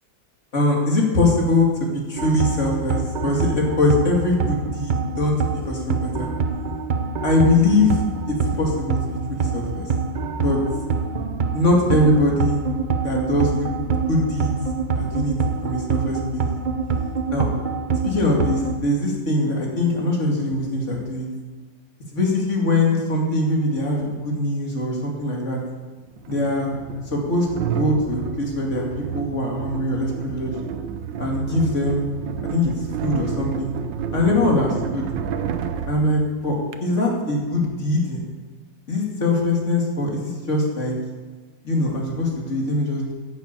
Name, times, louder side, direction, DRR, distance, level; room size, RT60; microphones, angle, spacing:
voice 1, 0.5-6.3 7.2-9.9 10.4-10.6 11.5-12.6 13.0-13.7 14.1-14.6 14.9-15.4 15.6-16.5 17.3-17.5 18.0-21.2 22.1-25.6 26.3-26.8 27.1-30.5 31.2-32.1 32.4-32.7 33.0-33.7 34.1-35.1 35.9-38.2 38.9-41.0 41.6-43.1, left 2 dB, 40° left, -1 dB, 2.7 m, -22 dB
sound 1, 2.2-18.8, right 4 dB, 65° right, 0.4 m, -25 dB
sound 2, 25.1-25.2 26.2-36.8, right 8 dB, 80° right, 1.5 m, -30 dB
10.5 x 8.1 x 8.4 m, 1.4 s
omnidirectional pair, 2.0 m